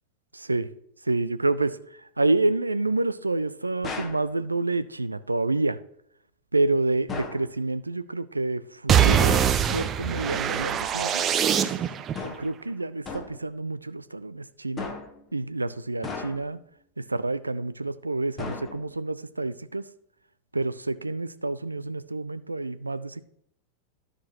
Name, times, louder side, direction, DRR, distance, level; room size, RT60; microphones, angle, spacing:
voice 1, 0.3-0.7 1.1-1.8 2.2-5.8 6.5-9.4 9.7-11.2 11.6-11.8 12.2-14.9 15.3-16.6 17.0-19.9 20.5-23.2, right 2 dB, 80° right, 14 dB, 0.4 m, -28 dB
sound 1, 3.8-4.3 7.1-7.5 9.3-9.7 12.1-12.6 13.1-13.5 14.8-15.2 16.0-16.6 18.4-19.0, left 4 dB, 25° left, 1.1 m, -36 dB
sound 2, 8.9-12.1, right 8 dB, 25° right, 0.6 m, -23 dB
12.5 x 6.4 x 2.9 m, 0.71 s
figure-of-eight pair, 90°, 0 cm